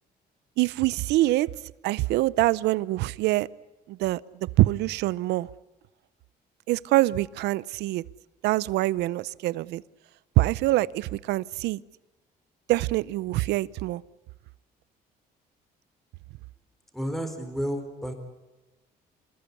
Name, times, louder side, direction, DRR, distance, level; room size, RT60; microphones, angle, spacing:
voice 1, 0.6-1.5 1.8-3.5 3.9-5.5 6.7-8.0 8.4-9.8 10.4-11.8 12.7-14.0, right 17 dB, 85° right, 20 dB, 0.7 m, -25 dB
voice 2, 16.9-18.1, equal, ahead, 6 dB, 4.3 m, -31 dB
27.0 x 20.0 x 8.5 m, 1.1 s
cardioid pair, 110°, 17 cm